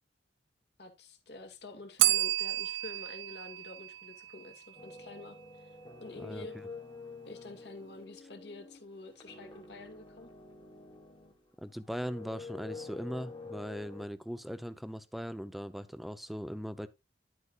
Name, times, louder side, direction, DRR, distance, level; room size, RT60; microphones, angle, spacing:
voice 1, 0.8-5.7 6.0-6.6 7.3-10.3, left 2 dB, 60° left, 2.0 m, -48 dB
Bell, 2.0-4.8, right 16 dB, 80° right, 0.5 m, -31 dB
sound 1, 4.8-11.5 11.8-14.1, left 4 dB, 25° left, 1.5 m, -48 dB
voice 2, 11.6-16.9, equal, ahead, 0.6 m, -39 dB
11.0 x 8.2 x 2.4 m
head